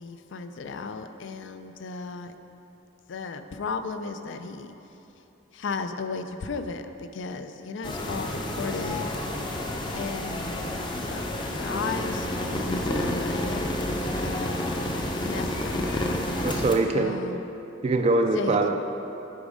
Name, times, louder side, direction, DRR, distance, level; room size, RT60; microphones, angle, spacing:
voice 1, 0.0-2.3 3.1-4.7 5.5-9.1 9.9-10.7 11.0-13.7 14.1-14.7 15.2-16.2 16.9-17.4 18.3-18.8, left 4 dB, 65° left, 9 dB, 0.4 m, -35 dB
sound 1, 7.8-16.8, left 1 dB, 25° left, 0.6 m, -29 dB
voice 2, 16.4-17.2 17.8-18.8, right 3 dB, 30° right, 5 dB, 0.3 m, -23 dB
8.4 x 5.2 x 5.0 m, 2.9 s
head